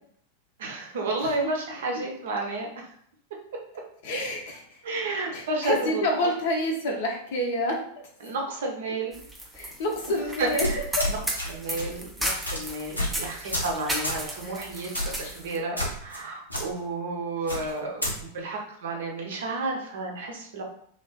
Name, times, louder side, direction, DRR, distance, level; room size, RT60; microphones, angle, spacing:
voice 1, 0.6-2.7 4.8-6.3 8.2-9.2 10.4-10.8 11.1-11.2 11.5-20.6, right 2 dB, 60° right, 0 dB, 0.5 m, -31 dB
voice 2, 4.0-4.8 5.3-7.8 9.5-10.7 11.0-11.1 14.4-14.6 15.2-15.4, left 1 dB, 55° left, 1 dB, 0.5 m, -28 dB
sound 1, 9.1-15.6, right 1 dB, 5° right, 0.4 m, -34 dB
sound 2, 10.6-11.5 11.8-12.0 12.4-12.6 13.0-13.2 13.5-13.7 14.0-14.2 14.9-15.2 15.8-16.2 16.5-16.6 17.5-18.1, left 1 dB, 90° left, 0.7 m, -29 dB
2.4 x 2.3 x 2.2 m, 0.64 s
figure-of-eight pair, 90°, 0 cm